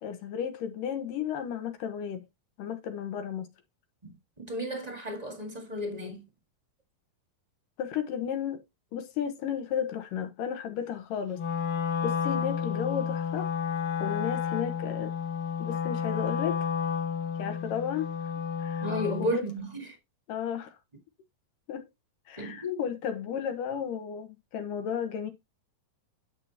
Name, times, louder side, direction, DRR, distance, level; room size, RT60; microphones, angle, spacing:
voice 1, 0.0-2.2 2.6-3.5 7.8-8.6 8.9-11.4 12.0-13.5 14.0-15.1 15.6-16.7 17.4-18.1 18.6-18.9 19.2-19.5 20.3-20.8 21.7-21.9 22.3-25.3, left 8 dB, 75° left, 2.8 m, -33 dB
voice 2, 4.0-6.2 18.8-19.8 22.4-22.8, left 1 dB, 20° right, 1.0 m, -33 dB
Wind instrument woodwind instrument, 11.3-19.4, left 7 dB, 55° left, 1.8 m, -31 dB
10.0 x 7.2 x 2.9 m
omnidirectional pair, 4.1 m